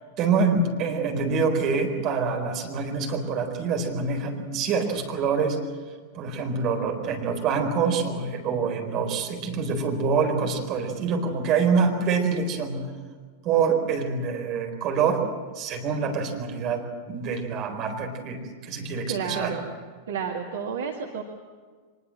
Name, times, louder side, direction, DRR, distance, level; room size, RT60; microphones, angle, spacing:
voice 1, 0.2-5.6 6.1-12.9 13.4-15.2 15.5-19.5, right 5 dB, 35° right, 3 dB, 4.4 m, -26 dB
voice 2, 19.1-19.7 20.1-21.2, right 6 dB, 60° right, 2 dB, 2.0 m, -31 dB
24.0 x 21.5 x 7.6 m, 1.5 s
figure-of-eight pair, 90°, 0 cm